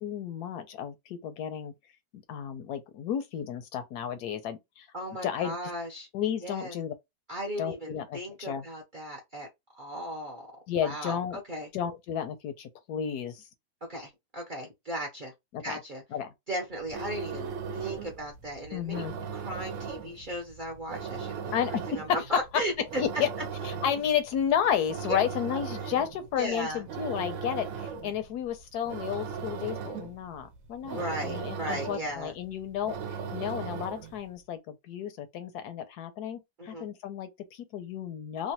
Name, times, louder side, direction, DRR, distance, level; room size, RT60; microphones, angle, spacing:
voice 1, 0.0-1.7 2.1-4.9 5.2-5.6 6.1-6.9 7.6-8.7 10.7-11.4 11.7-13.5 15.5-15.8 16.1-16.3 18.7-19.2 21.5-22.2 22.8-23.3 23.6-33.0 33.3-38.5, left 9 dB, 75° left, 1.1 m, -32 dB
voice 2, 4.9-6.1 6.4-6.7 7.3-9.5 9.7-10.5 10.8-11.7 13.9-15.3 15.6-16.0 16.5-19.0 19.3-21.6 21.9-22.7 25.1-25.2 26.4-26.8 30.9-32.3 36.6-36.9, right 1 dB, 45° right, 0.7 m, -36 dB
sound 1, 16.7-34.2, right 6 dB, 65° right, 0.9 m, -38 dB
3.1 x 2.3 x 2.7 m
omnidirectional pair, 1.7 m